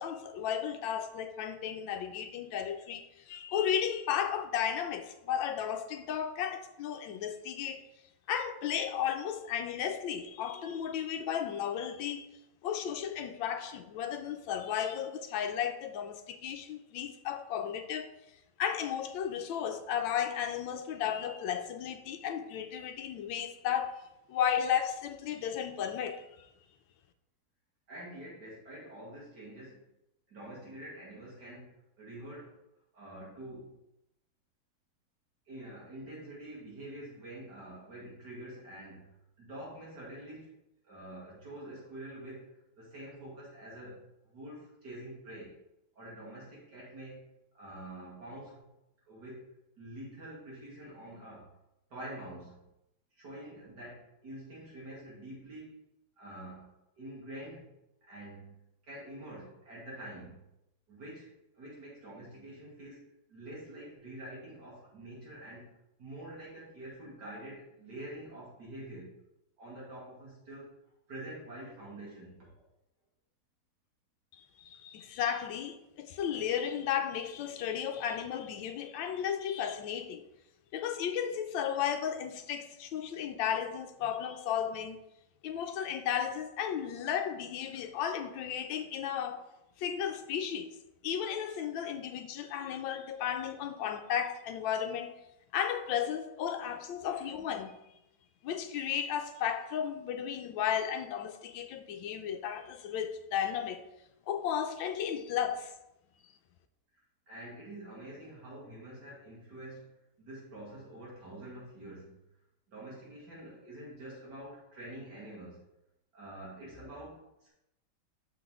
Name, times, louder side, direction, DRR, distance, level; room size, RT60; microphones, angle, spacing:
voice 1, 0.0-7.8 8.3-12.3 12.6-18.1 18.6-23.9 24.3-26.5 74.3-80.3 80.7-85.0 85.4-89.4 89.8-90.7 91.0-95.1 95.5-97.8 98.4-103.8 104.3-105.7, left 9 dB, 80° left, 1.3 m, -34 dB
voice 2, 27.9-29.8 30.3-32.6 32.9-33.8 35.5-39.1 39.4-40.5 40.8-45.6 46.0-47.2 47.5-48.7 49.1-49.5 49.8-51.5 51.9-52.6 53.2-55.8 56.2-56.7 57.0-57.7 58.1-58.6 58.9-60.5 60.9-61.3 61.5-65.7 66.0-69.1 69.6-70.8 71.1-72.6 96.6-96.8 97.0-97.3 107.3-109.9 110.2-112.2 112.7-115.6 116.1-117.5, right 1 dB, 55° right, 3.1 m, -46 dB
6.4 x 5.9 x 3.6 m
omnidirectional pair, 2.2 m